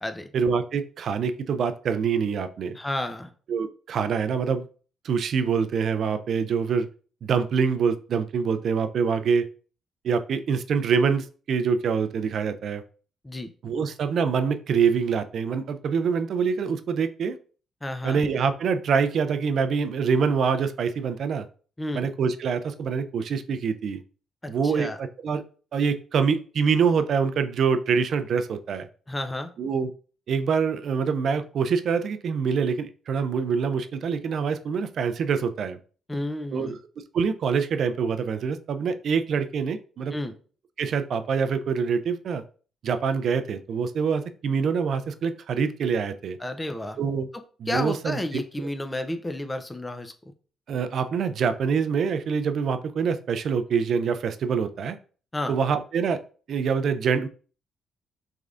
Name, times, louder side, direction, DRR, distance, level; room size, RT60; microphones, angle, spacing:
voice 1, 0.3-2.8 3.5-4.7 5.0-6.9 7.2-9.5 10.0-12.8 13.6-17.4 18.0-21.5 21.9-24.0 24.5-25.4 25.7-28.9 29.6-29.9 30.3-35.8 36.5-36.8 37.1-40.1 40.8-42.4 42.8-46.4 47.0-47.3 47.6-48.4 50.7-55.0 55.5-56.2 56.5-57.3, right 6 dB, 60° right, 10 dB, 0.4 m, -25 dB
voice 2, 2.7-3.3 13.2-13.5 17.8-18.2 21.8-22.1 24.4-25.0 29.1-29.5 36.1-36.8 40.1-40.4 46.4-47.0 47.7-50.1 55.3-55.5, left 1 dB, 15° left, 8 dB, 0.5 m, -31 dB
3.6 x 3.2 x 2.4 m, 0.39 s
cardioid pair, 90°, 0 cm